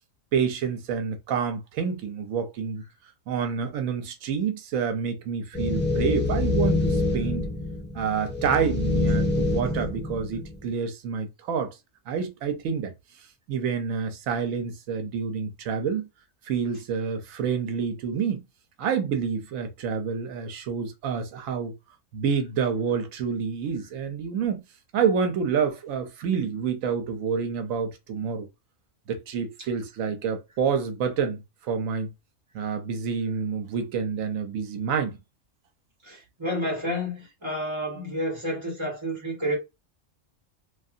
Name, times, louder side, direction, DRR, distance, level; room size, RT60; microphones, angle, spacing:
voice 1, 0.3-2.8 3.3-7.4 7.9-11.8 12.1-12.9 13.5-16.1 16.4-18.4 18.8-21.7 22.1-24.6 24.9-28.5 29.1-32.1 32.5-35.2, right 6 dB, 90° right, 1.0 m, -28 dB
sound 1, 5.5-10.7, left 2 dB, 10° left, 0.6 m, -26 dB
voice 2, 36.0-39.6, equal, 20° right, 1.3 m, -30 dB
2.7 x 2.5 x 2.4 m
omnidirectional pair, 1.3 m